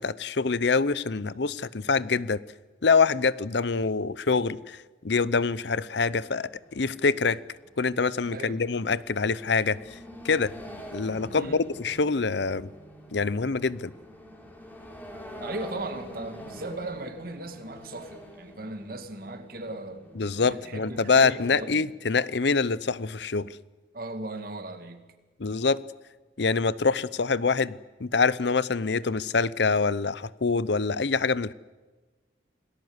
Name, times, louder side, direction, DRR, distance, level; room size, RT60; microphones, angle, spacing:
voice 1, 0.0-2.4 2.8-7.4 7.8-10.0 10.2-10.5 10.9-12.7 13.1-13.9 20.2-23.5 25.4-25.8 26.4-31.5, left 4 dB, 65° left, 0.7 m, -25 dB
sound 1, 6.3-21.7, equal, 10° left, 3.7 m, -45 dB
voice 2, 8.3-8.6 11.3-11.6 15.4-20.0 20.5-21.8 23.9-25.0, right 2 dB, 50° right, 2.4 m, -37 dB
28.0 x 18.5 x 8.1 m
head